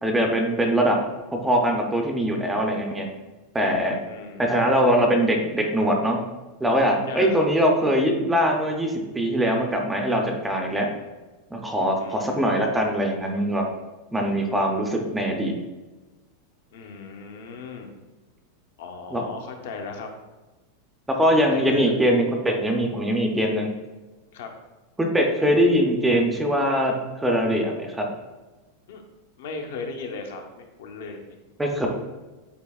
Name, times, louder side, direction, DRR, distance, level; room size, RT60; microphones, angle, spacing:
voice 1, 0.0-1.0 1.3-3.1 3.5-4.0 4.4-6.2 6.6-10.9 11.5-13.7 14.1-15.5 19.1-19.2 21.2-23.7 25.0-28.1 31.6-31.9, equal, 5° right, 1 dB, 0.4 m, -22 dB
voice 2, 4.1-4.9 7.0-7.5 12.0-13.2 16.7-17.9 18.8-20.1 21.5-21.9 24.3-24.5 28.9-29.0 29.4-31.4, left 4 dB, 65° left, 4 dB, 0.7 m, -37 dB
8.0 x 2.8 x 2.3 m, 1.2 s
supercardioid pair, 175°, 0 cm